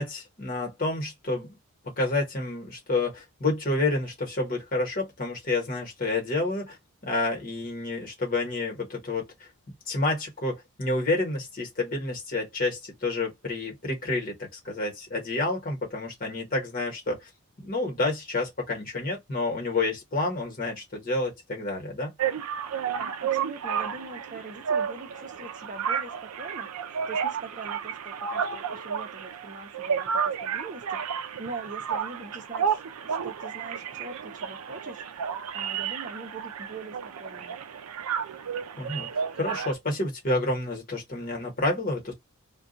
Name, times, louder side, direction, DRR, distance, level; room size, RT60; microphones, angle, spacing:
voice 1, 0.0-1.6 2.0-6.8 7.0-9.3 9.9-17.3 17.6-22.1 38.8-42.1, left 2 dB, 40° left, 1.2 m, -29 dB
sound 1, 22.2-39.7, right 7 dB, 85° right, 0.4 m, -32 dB
voice 2, 23.0-35.0 35.5-37.6, right 3 dB, 35° right, 0.7 m, -42 dB
2.4 x 2.3 x 3.8 m
head